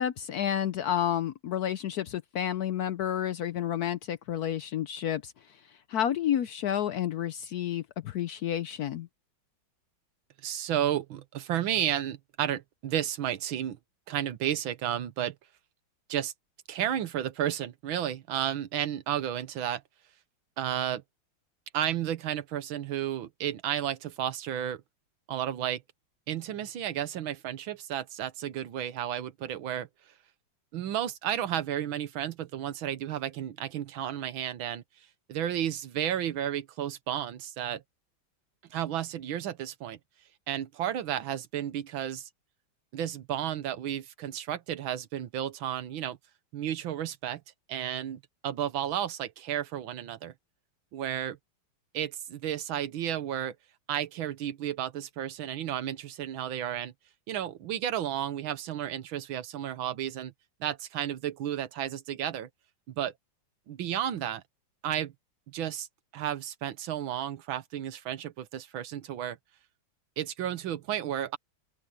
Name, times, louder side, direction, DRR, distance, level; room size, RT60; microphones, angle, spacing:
voice 1, 0.0-5.3 5.9-9.1, left 10 dB, 65° left, 0.9 m, -30 dB
voice 2, 10.4-13.8 14.1-15.4 16.1-16.3 16.7-19.8 20.6-21.0 21.7-24.8 25.3-25.8 26.3-29.9 30.7-34.8 35.3-37.8 38.7-40.0 40.5-42.3 42.9-46.2 46.5-47.4 47.7-50.3 50.9-51.4 51.9-53.6 53.9-56.9 57.3-60.3 60.6-62.5 62.9-63.1 63.7-64.4 64.8-65.1 65.5-65.9 66.1-69.4 70.2-71.4, right 10 dB, 90° right, 1.8 m, -32 dB
open air
omnidirectional pair, 2.1 m